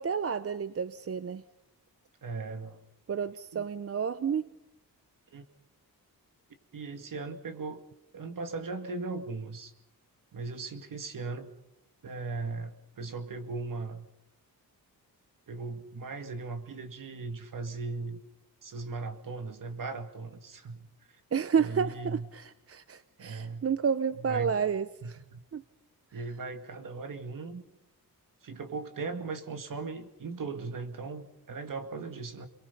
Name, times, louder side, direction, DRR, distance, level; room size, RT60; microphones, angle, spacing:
voice 1, 0.0-1.4 3.1-4.5 21.3-25.2 25.5-25.6, right 6 dB, 40° right, 13 dB, 0.7 m, -30 dB
voice 2, 2.2-2.8 3.5-3.6 5.3-5.4 6.7-7.8 8.1-9.7 10.3-11.5 12.0-14.1 15.5-18.2 18.6-20.9 21.6-22.3 23.2-23.7 24.1-24.6 25.0-25.4 26.1-27.6 28.4-32.5, right 4 dB, 60° right, 7 dB, 2.3 m, -38 dB
27.0 x 22.5 x 5.5 m, 0.88 s
wide cardioid pair, 100°, 36 cm